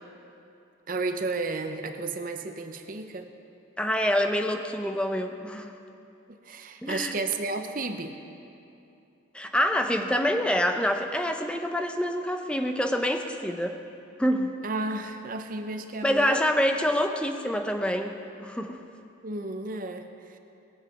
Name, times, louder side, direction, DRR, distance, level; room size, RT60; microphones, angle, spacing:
voice 1, 0.9-3.3 6.3-8.2 14.6-16.5 19.2-20.4, right 3 dB, 45° right, 6 dB, 0.7 m, -33 dB
voice 2, 3.8-5.7 6.8-7.1 9.3-13.8 14.2-14.5 16.0-18.1 18.4-18.8, equal, 5° left, 5 dB, 0.7 m, -26 dB
20.5 x 7.5 x 5.8 m, 2.7 s
head